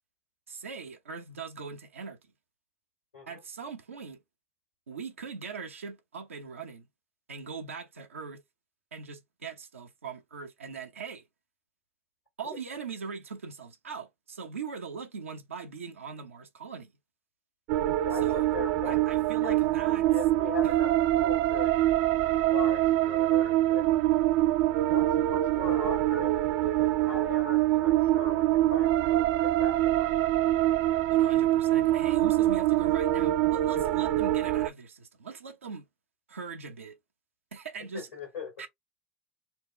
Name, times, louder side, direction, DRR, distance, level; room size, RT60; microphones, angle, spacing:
voice 1, 0.5-2.2 3.3-4.2 4.9-6.9 7.3-8.4 8.9-11.2 12.4-16.9 18.1-18.5 18.8-20.1 31.1-35.8 36.3-36.9 37.5-38.1 38.6-38.7, right 5 dB, 90° right, 0.9 m, -40 dB
sound 1, 17.7-34.7, right 14 dB, 65° right, 0.5 m, -25 dB
voice 2, 18.0-19.0 19.4-19.6 20.0-21.8 22.1-24.0 24.5-24.6 24.8-26.3 26.6-30.1 37.9-38.6, left 6 dB, 85° left, 1.8 m, -40 dB
4.4 x 2.2 x 3.3 m
hypercardioid pair, 75°, 7 cm